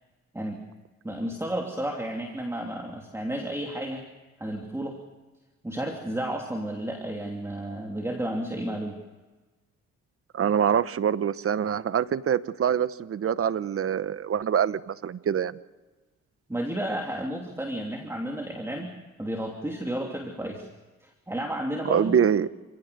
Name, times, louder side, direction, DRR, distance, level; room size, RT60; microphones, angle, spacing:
voice 1, 1.0-4.0 4.4-5.0 5.6-9.0 16.5-18.9 19.2-20.7 21.0-22.2, right 1 dB, 10° right, 2 dB, 2.8 m, -32 dB
voice 2, 10.3-15.6 21.8-22.5, right 8 dB, 45° right, 15 dB, 1.0 m, -25 dB
28.5 x 17.0 x 6.7 m, 1.3 s
cardioid pair, 90°, 30 cm